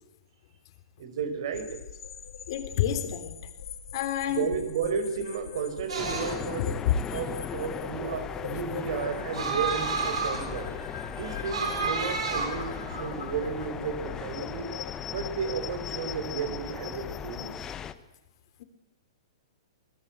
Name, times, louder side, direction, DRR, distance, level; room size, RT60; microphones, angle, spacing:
voice 1, 1.0-1.8 4.3-6.7 7.1-10.8 11.1-14.7 15.1-17.5, right 6 dB, 65° right, 9 dB, 4.9 m, -33 dB
sound 1, 1.5-17.8, left 8 dB, 75° left, 2.9 m, -42 dB
voice 2, 2.5-3.4 3.9-4.5 6.6-6.9, left 11 dB, 55° left, 9 dB, 3.7 m, -28 dB
sound 2, 5.9-13.6, right 5 dB, 90° right, 7.9 m, -32 dB
sound 3, 6.0-17.9, left 8 dB, 20° left, 1.2 m, -38 dB
26.0 x 19.5 x 8.2 m, 0.95 s
hypercardioid pair, 145°, 3 cm